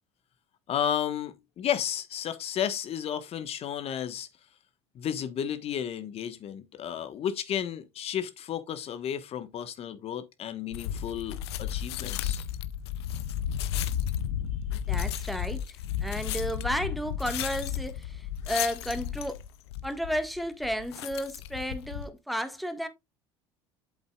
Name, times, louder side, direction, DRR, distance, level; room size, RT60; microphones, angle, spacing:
voice 1, 0.7-4.3 4.9-12.4, left 9 dB, 50° left, 1.3 m, -33 dB
sound 1, 10.7-22.1, left 9 dB, 80° left, 0.7 m, -33 dB
voice 2, 14.9-19.4 19.8-22.9, equal, ahead, 1.6 m, -33 dB
8.2 x 8.0 x 2.4 m
hypercardioid pair, 70°, 13 cm